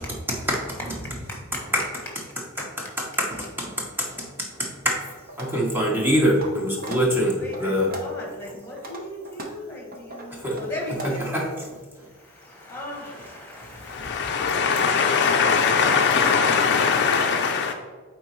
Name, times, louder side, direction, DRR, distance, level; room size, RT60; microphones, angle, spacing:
voice 1, 3.2-5.0 5.4-7.9 10.3-10.6 10.9-11.7 12.0-12.1 13.1-13.2 13.9-14.2, equal, 10° right, 0.9 m, -25 dB
sound 1, 5.3-5.5 6.0-6.5 6.8-7.0 7.5-8.2 8.6-11.1, right 1 dB, 45° right, 0.9 m, -37 dB
voice 2, 7.4-11.5 12.1-15.8, left 1 dB, 10° left, 1.6 m, -38 dB
voice 3, 13.9-17.7, left 5 dB, 50° left, 0.4 m, -21 dB
8.7 x 4.1 x 3.1 m
head